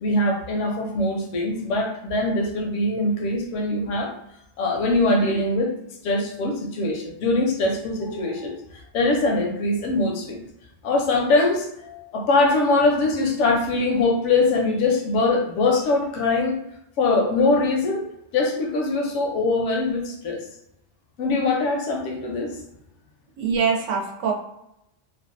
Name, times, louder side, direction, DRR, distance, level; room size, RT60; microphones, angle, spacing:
voice 1, 0.0-4.1 4.6-5.7 6.0-10.4 10.8-16.6 17.0-18.1 18.3-20.4 21.2-22.6, left 2 dB, 85° left, 2 dB, 0.9 m, -22 dB
voice 2, 23.4-24.3, right 6 dB, 85° right, 0 dB, 0.9 m, -23 dB
2.6 x 2.2 x 2.4 m, 0.82 s
omnidirectional pair, 1.2 m